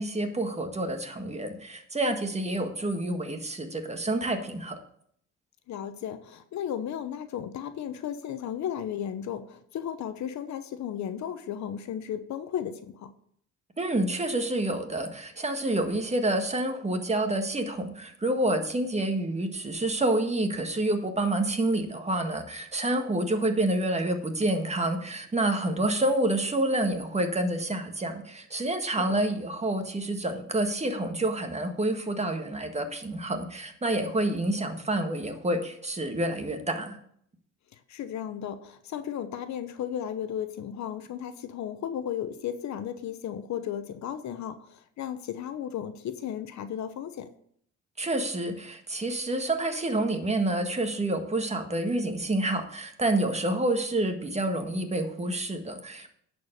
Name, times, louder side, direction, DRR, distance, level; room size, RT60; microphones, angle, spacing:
voice 1, 0.0-4.8 13.8-37.0 48.0-56.1, right 1 dB, 20° right, 6 dB, 1.6 m, -28 dB
voice 2, 5.7-13.1 28.8-29.2 37.7-47.3, left 9 dB, 65° left, 11 dB, 0.9 m, -35 dB
10.5 x 4.7 x 6.6 m, 0.65 s
supercardioid pair, 75°, 31 cm